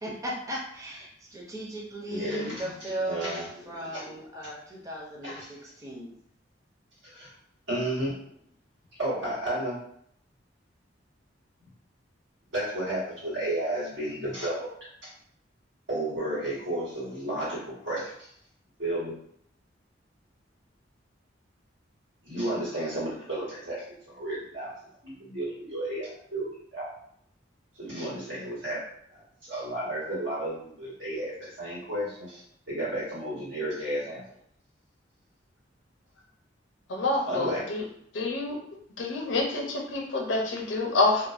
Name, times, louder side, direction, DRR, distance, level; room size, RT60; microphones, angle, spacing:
voice 1, 0.0-6.2, right 1 dB, 20° right, -4 dB, 0.5 m, -37 dB
voice 2, 2.1-2.7 3.1-4.0 5.2-5.5 7.0-7.3 7.7-8.1 9.0-9.8 12.5-14.7 15.0-15.1 15.9-18.1 18.8-19.1 22.2-24.7 25.0-26.9 27.8-28.8 29.1-32.4 32.7-34.2 37.3-37.6, right 1 dB, 90° right, -8 dB, 1.4 m, -32 dB
voice 3, 36.9-37.8 38.1-38.6 39.0-41.3, left 2 dB, 80° left, 0 dB, 0.6 m, -27 dB
2.4 x 2.1 x 2.4 m, 0.68 s
head